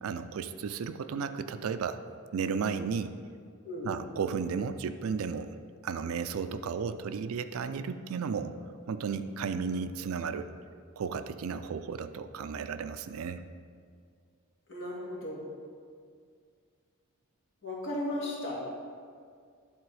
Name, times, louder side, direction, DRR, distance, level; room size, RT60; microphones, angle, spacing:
voice 1, 0.0-2.0 2.3-3.2 3.8-5.5 5.8-8.5 8.9-10.5 11.0-13.4, right 6 dB, 70° right, 11 dB, 0.4 m, -34 dB
voice 2, 14.7-15.5 17.6-18.6, left 1 dB, 65° left, -5 dB, 2.0 m, -35 dB
10.5 x 4.1 x 4.8 m, 2.1 s
head